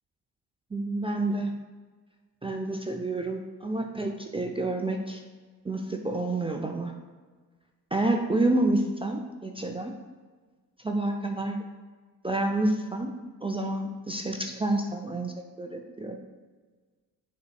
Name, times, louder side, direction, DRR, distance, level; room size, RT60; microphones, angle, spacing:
voice 1, 0.7-1.5 2.4-5.2 5.6-6.9 7.9-9.9 10.8-11.6 12.2-13.1 13.4-16.2, right 2 dB, 15° right, 3 dB, 0.4 m, -29 dB
7.8 x 3.1 x 2.2 m, 1.4 s
hypercardioid pair, 45°, 46 cm